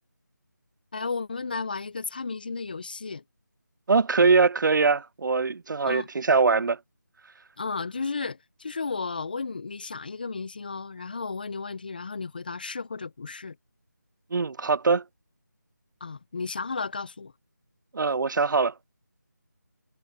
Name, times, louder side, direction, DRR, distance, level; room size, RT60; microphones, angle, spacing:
voice 1, 0.9-3.2 5.9-6.1 7.6-13.6 16.0-17.3, left 4 dB, 30° left, 0.6 m, -33 dB
voice 2, 3.9-6.8 14.3-15.0 17.9-18.7, right 4 dB, 85° right, 0.4 m, -22 dB
figure-of-eight pair, 170°, 10 cm